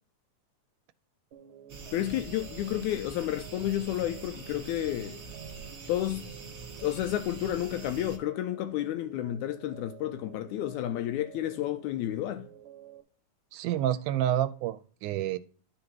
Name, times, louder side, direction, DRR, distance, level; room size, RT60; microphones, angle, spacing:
sound 1, 1.3-13.0, right 10 dB, 60° right, 1.4 m, -50 dB
sound 2, 1.7-8.2, right 4 dB, 30° right, 1.9 m, -44 dB
voice 1, 1.9-5.2 5.9-6.3 6.8-12.5, left 13 dB, 80° left, 1.8 m, -31 dB
voice 2, 13.5-15.4, right 12 dB, 80° right, 2.0 m, -29 dB
11.5 x 3.9 x 4.5 m
omnidirectional pair, 3.7 m